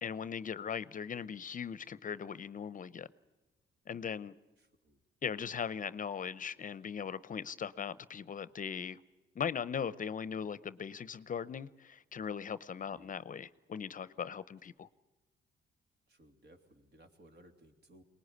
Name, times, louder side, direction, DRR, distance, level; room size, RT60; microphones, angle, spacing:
voice 1, 0.0-3.1 3.9-4.4 5.2-9.0 9.4-14.9, left 7 dB, 40° left, 0.7 m, -39 dB
voice 2, 4.6-5.0 12.8-13.2 16.1-18.0, right 1 dB, 55° right, 3.2 m, -61 dB
23.0 x 19.5 x 9.7 m
cardioid pair, 90°, 20 cm